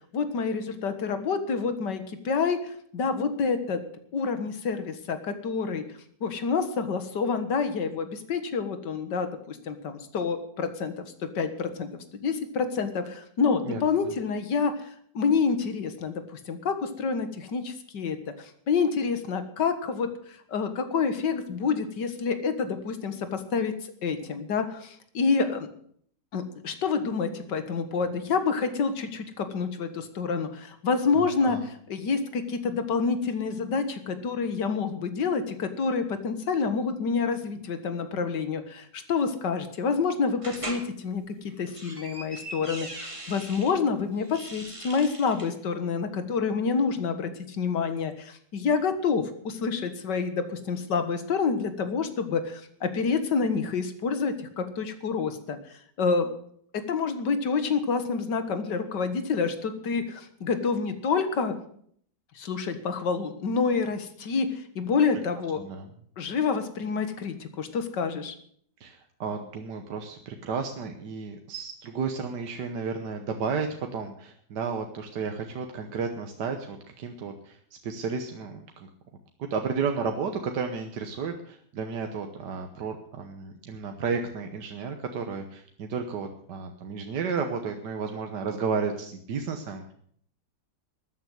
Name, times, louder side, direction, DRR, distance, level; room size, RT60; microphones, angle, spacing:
voice 1, 0.1-3.8 4.1-5.8 6.2-11.1 11.4-11.9 12.1-14.9 15.1-23.7 24.0-25.7 26.3-56.3 56.9-61.6 62.4-65.6 66.2-68.3, left 5 dB, 80° left, 9 dB, 2.1 m, -28 dB
voice 2, 13.6-14.1 31.2-31.6 65.6-65.9 68.8-77.6 77.8-78.9 79.4-89.9, right 5 dB, 75° right, 5 dB, 1.7 m, -32 dB
sound 1, 40.4-40.9 41.5-43.7 44.2-45.5, right 1 dB, 20° right, 2.0 m, -40 dB
13.0 x 9.7 x 7.8 m, 0.62 s
omnidirectional pair, 1.8 m